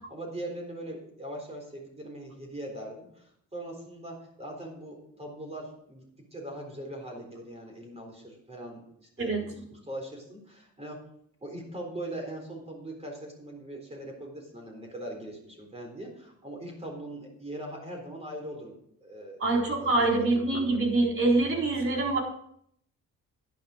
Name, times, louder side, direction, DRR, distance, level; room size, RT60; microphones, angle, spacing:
voice 1, 0.1-6.0 6.3-9.5 9.9-11.0 11.4-19.4 19.8-20.3, right 1 dB, 20° right, 1 dB, 3.9 m, -41 dB
voice 2, 19.4-22.2, right 2 dB, 45° right, 0 dB, 4.0 m, -25 dB
11.0 x 10.5 x 5.0 m, 0.68 s
cardioid pair, 90°, 30 cm